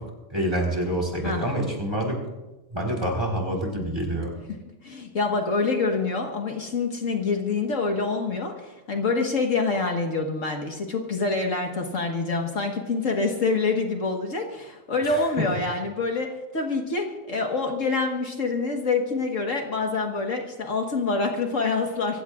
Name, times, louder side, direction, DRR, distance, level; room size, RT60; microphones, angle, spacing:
voice 1, 0.3-2.2 2.7-4.3 15.1-15.2, right 1 dB, 15° right, 0 dB, 4.3 m, -27 dB
voice 2, 4.8-22.2, left 3 dB, 65° left, 2 dB, 1.9 m, -26 dB
25.5 x 16.5 x 2.5 m, 1.1 s
omnidirectional pair, 1.5 m